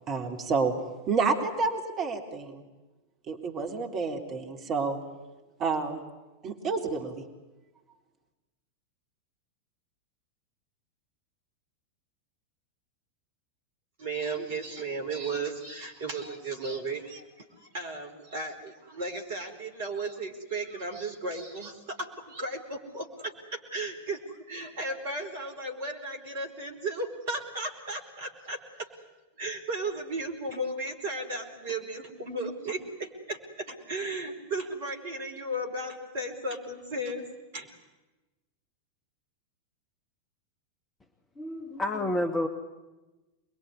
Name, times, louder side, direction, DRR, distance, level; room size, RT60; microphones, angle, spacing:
voice 1, 0.1-0.7 1.1-2.6 3.3-5.0 5.6-6.0 6.4-7.2, right 4 dB, 35° right, 4 dB, 3.6 m, -29 dB
voice 2, 14.0-28.9 29.4-37.3 37.5-37.7, right 2 dB, 55° right, 3 dB, 4.7 m, -35 dB
voice 3, 41.4-42.5, left 1 dB, 15° left, 5 dB, 2.1 m, -29 dB
27.5 x 22.0 x 9.8 m, 1.1 s
figure-of-eight pair, 90°, 0 cm